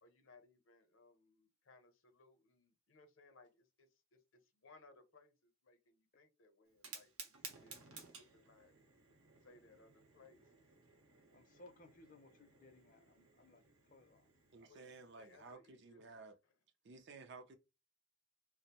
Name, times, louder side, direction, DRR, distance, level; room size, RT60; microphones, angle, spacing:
voice 1, 0.0-8.7 9.4-10.6 14.7-16.0 16.4-16.5, left 3 dB, 70° left, 0.7 m, -66 dB
Fire, 6.7-15.5, right 5 dB, 90° right, 0.8 m, -57 dB
voice 2, 11.3-13.6 13.9-14.2, left 2 dB, 40° left, 0.5 m, -62 dB
voice 3, 14.5-16.4 16.8-17.6, right 3 dB, 55° right, 0.4 m, -55 dB
2.5 x 2.0 x 2.8 m
head